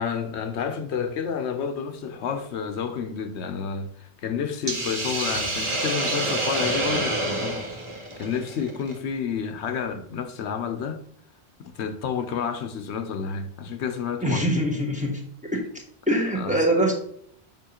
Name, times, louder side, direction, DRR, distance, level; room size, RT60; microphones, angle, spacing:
voice 1, 0.0-7.7 8.2-11.0 11.6-14.6 16.4-16.6, left 6 dB, 85° left, 1.0 m, -30 dB
Hiss, 4.7-8.9, right 2 dB, 30° right, 1.0 m, -28 dB
voice 2, 14.2-15.2 15.5-15.7 16.1-16.9, right 1 dB, 5° right, 1.3 m, -23 dB
6.9 x 5.5 x 2.9 m
omnidirectional pair, 1.1 m